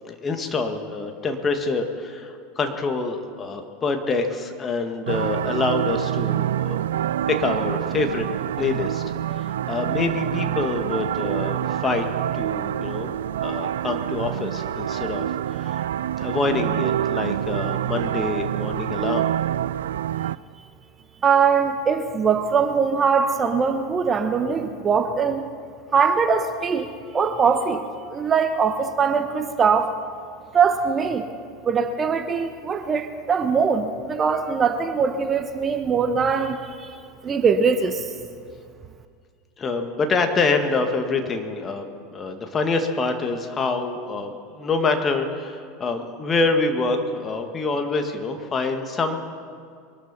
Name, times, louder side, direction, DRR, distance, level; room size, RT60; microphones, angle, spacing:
voice 1, 0.0-6.8 7.3-8.3 8.6-9.0 9.3-12.1 12.3-13.1 13.4-19.3 39.6-49.2, left 3 dB, 25° left, 5 dB, 1.8 m, -26 dB
sound 1, 5.1-20.4, right 11 dB, 70° right, 0.3 m, -26 dB
voice 2, 21.2-25.5 25.9-27.8 28.1-29.9 30.5-31.3 31.6-37.0 37.2-38.1, right 6 dB, 25° right, 8 dB, 1.0 m, -21 dB
23.5 x 12.5 x 4.3 m, 2.2 s
figure-of-eight pair, 80°, 0 cm